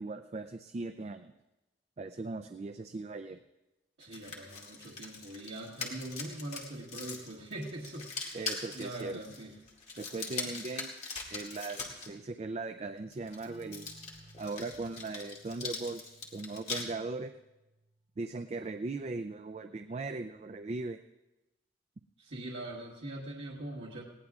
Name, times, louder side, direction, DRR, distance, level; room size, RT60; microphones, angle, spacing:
voice 1, 0.0-1.3 2.0-3.4 8.3-9.2 10.0-10.9 11.3-13.9 14.4-17.3 18.2-21.0, right 3 dB, 35° right, 9 dB, 0.4 m, -39 dB
sound 1, 4.0-12.1 13.1-16.8, left 4 dB, 40° left, 2.1 m, -41 dB
voice 2, 4.0-8.4 8.7-9.6 22.2-24.0, right 1 dB, 90° right, -5 dB, 1.4 m, -42 dB
sound 2, 13.3-18.7, right 1 dB, 20° right, 4.2 m, -59 dB
19.5 x 17.0 x 2.4 m, 1.0 s
head